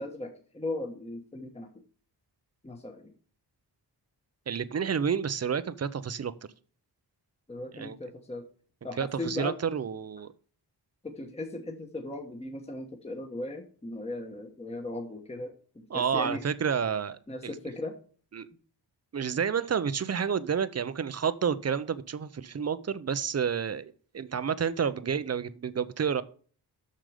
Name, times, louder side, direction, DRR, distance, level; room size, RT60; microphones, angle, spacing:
voice 1, 0.0-1.7 2.6-3.1 7.5-8.4 8.8-9.6 11.0-16.4 17.3-18.0, left 2 dB, 15° left, 1.1 m, -37 dB
voice 2, 4.5-6.3 7.7-8.0 9.0-10.3 15.9-17.5 18.3-18.5 19.1-26.2, right 7 dB, 40° right, 0.6 m, -30 dB
7.6 x 6.6 x 4.9 m
wide cardioid pair, 125°, 42 cm